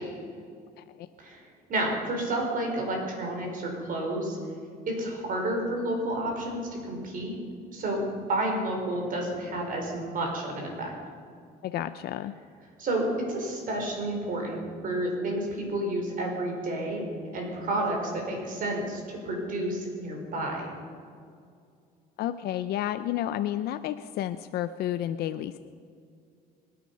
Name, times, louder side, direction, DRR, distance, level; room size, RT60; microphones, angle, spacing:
voice 1, 0.8-1.1 11.6-12.3 22.2-25.6, left 12 dB, 70° left, 11 dB, 0.5 m, -31 dB
voice 2, 1.7-4.4 4.9-7.4 7.7-8.0 8.3-10.9 12.8-14.6 14.8-17.0 17.3-19.0 19.2-20.6, right 1 dB, 55° right, 1 dB, 5.0 m, -30 dB
26.0 x 9.5 x 5.6 m, 2.3 s
cardioid pair, 110°, 17 cm